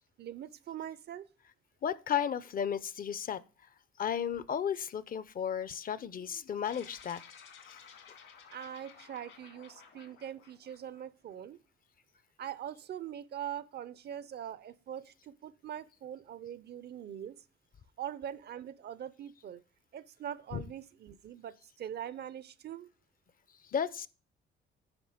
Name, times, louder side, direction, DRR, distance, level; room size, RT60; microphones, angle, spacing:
voice 1, 0.2-1.3 8.5-11.6 12.4-17.4 18.0-19.6 19.9-22.9, right 10 dB, 55° right, 0.6 m, -42 dB
voice 2, 1.8-3.4 4.0-7.2 7.7-7.8 20.5-20.6 23.7-24.1, left 8 dB, 45° left, 0.6 m, -34 dB
sound 1, 6.6-11.3, left 7 dB, 75° left, 2.4 m, -55 dB
9.6 x 5.4 x 5.0 m
cardioid pair, 90°, 20 cm